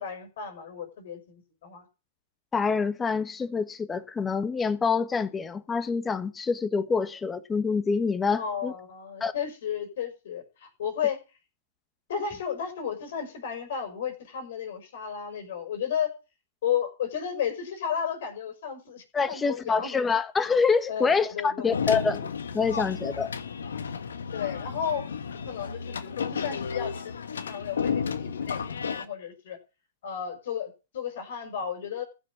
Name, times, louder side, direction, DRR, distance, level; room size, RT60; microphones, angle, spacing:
voice 1, 0.0-1.9 8.4-11.2 12.1-16.1 16.6-20.0 20.9-21.8 24.3-25.1 25.3-29.6 30.0-32.0, left 8 dB, 60° left, 5.8 m, -33 dB
voice 2, 2.5-8.7 9.2-9.3 19.1-22.3 22.5-23.3, left 5 dB, 15° left, 1.4 m, -26 dB
sound 1, 21.7-29.1, left 6 dB, 85° left, 1.4 m, -32 dB
15.0 x 6.3 x 7.1 m
hypercardioid pair, 135°, 0 cm